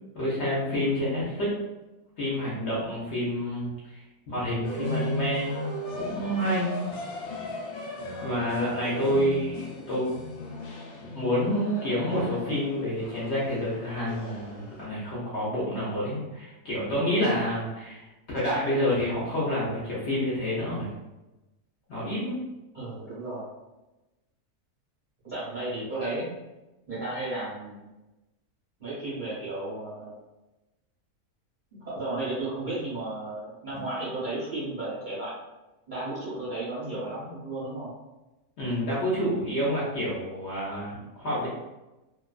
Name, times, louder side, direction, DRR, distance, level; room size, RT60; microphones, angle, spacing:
voice 1, 0.1-1.6 2.2-6.7 8.2-10.1 11.1-20.9 21.9-22.4 38.6-41.5, equal, 55° left, -7 dB, 0.8 m, -28 dB
sound 1, 4.6-14.8, left 1 dB, 85° left, 1.1 m, -36 dB
voice 2, 22.7-23.5 25.2-26.3 26.9-27.9 28.8-30.1 31.7-35.3 35.9-37.9, right 2 dB, 45° right, -10 dB, 0.7 m, -34 dB
2.5 x 2.3 x 2.3 m, 1.1 s
omnidirectional pair, 1.6 m